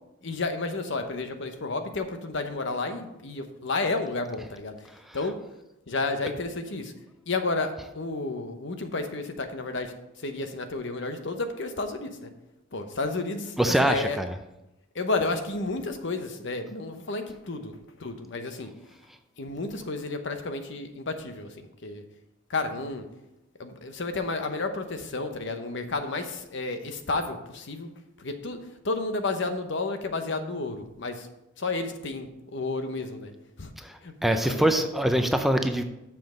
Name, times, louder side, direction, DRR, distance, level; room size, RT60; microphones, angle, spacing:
voice 1, 0.2-5.4 5.9-6.9 7.3-12.3 12.7-14.2 14.9-17.7 18.0-18.7 19.4-22.0 22.5-23.1 23.6-27.9 28.2-28.6 28.8-31.3 31.6-33.3 33.6-33.7 34.0-34.7, left 3 dB, 65° left, 7 dB, 0.9 m, -31 dB
voice 2, 13.6-14.3 33.8-35.8, right 1 dB, ahead, 6 dB, 0.5 m, -24 dB
7.0 x 6.0 x 6.3 m, 0.93 s
head